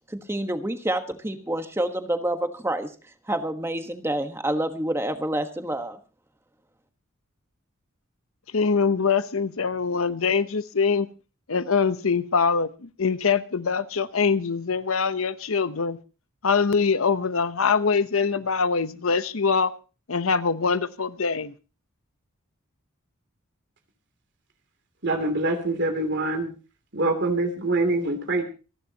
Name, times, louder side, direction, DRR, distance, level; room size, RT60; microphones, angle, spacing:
voice 1, 0.1-2.9 3.3-6.0, right 1 dB, 10° right, 7 dB, 1.3 m, -28 dB
voice 2, 8.5-11.1 11.5-16.0 16.4-19.7 20.1-21.5, left 5 dB, 75° left, 13 dB, 0.9 m, -23 dB
voice 3, 25.0-26.5 26.9-28.4, right 2 dB, 55° right, 6 dB, 2.9 m, -24 dB
26.5 x 11.5 x 2.9 m, 0.34 s
head